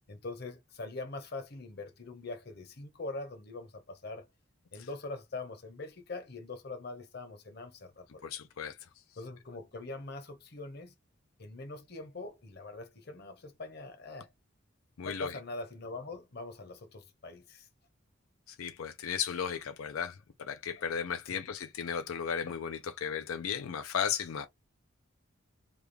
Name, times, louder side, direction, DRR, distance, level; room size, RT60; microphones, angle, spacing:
voice 1, 0.1-4.3 4.7-8.2 9.2-10.9 11.4-14.3 15.0-17.7 21.3-21.4, left 2 dB, 50° left, 0.9 m, -43 dB
voice 2, 8.2-8.8 15.0-15.3 18.5-24.5, left 7 dB, 90° left, 0.4 m, -35 dB
3.4 x 2.3 x 3.4 m
head